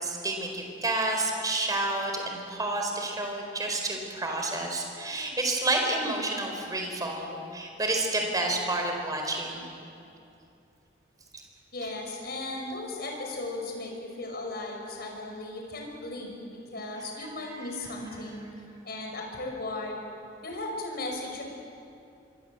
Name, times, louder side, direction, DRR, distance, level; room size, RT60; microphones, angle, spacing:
voice 1, 0.0-9.7 17.0-17.6, right 2 dB, 20° right, 2 dB, 4.3 m, -30 dB
voice 2, 11.7-18.5 18.8-20.0 20.4-21.4, left 2 dB, 55° left, 1 dB, 5.8 m, -36 dB
26.0 x 24.5 x 8.0 m, 2.6 s
head